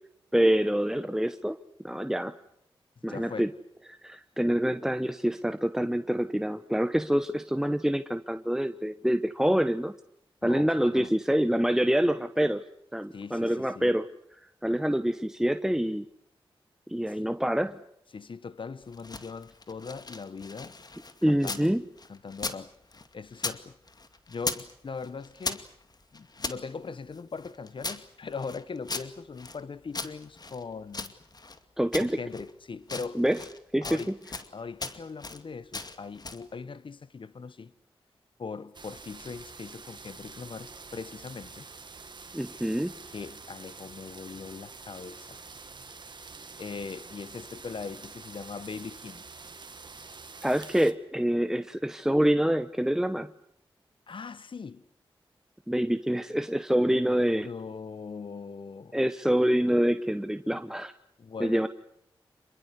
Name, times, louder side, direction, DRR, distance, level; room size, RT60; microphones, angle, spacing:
voice 1, 0.3-1.6 1.8-2.3 3.0-3.5 3.9-9.9 10.4-12.6 12.9-14.1 14.6-16.0 16.9-17.8 21.2-21.8 31.8-32.2 33.1-33.4 33.7-34.1 42.3-43.0 50.4-53.3 55.7-57.5 58.9-60.9 61.4-61.7, equal, 5° right, 1.1 m, -26 dB
voice 2, 3.1-3.5 10.4-11.1 13.1-13.9 17.1-17.3 18.1-20.8 21.3-21.7 22.1-22.7 23.1-23.8 24.3-25.7 26.1-31.1 32.0-33.2 33.8-34.1 34.5-37.7 38.4-41.7 43.1-45.4 46.6-49.3 54.1-54.8 56.9-59.0 61.2-61.7, left 5 dB, 60° left, 1.4 m, -40 dB
sound 1, 18.8-21.7 22.0-23.6 23.9-24.7 25.0-26.6 27.1-29.6 29.9-31.6 31.9-32.5 32.8-33.6 33.8-34.5 34.8-35.4 35.7-36.5, left 3 dB, 45° left, 2.3 m, -38 dB
sound 2, 38.7-50.9, right 4 dB, 50° right, 2.2 m, -47 dB
27.0 x 22.5 x 8.2 m
cardioid pair, 45°, 10 cm